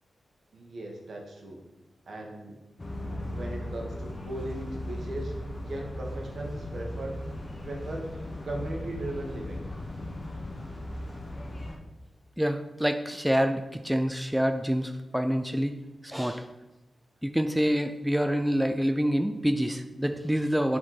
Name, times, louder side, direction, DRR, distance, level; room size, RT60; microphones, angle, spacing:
voice 1, 0.5-1.6 2.1-2.6 3.3-7.2 7.6-9.7, right 1 dB, 65° right, 0 dB, 1.4 m, -38 dB
sound 1, 2.8-11.8, left 1 dB, 40° left, 1.1 m, -37 dB
voice 2, 12.4-16.4 17.2-20.8, equal, 5° right, 7 dB, 0.4 m, -27 dB
7.3 x 4.3 x 4.1 m, 1.0 s
cardioid pair, 55°, 0 cm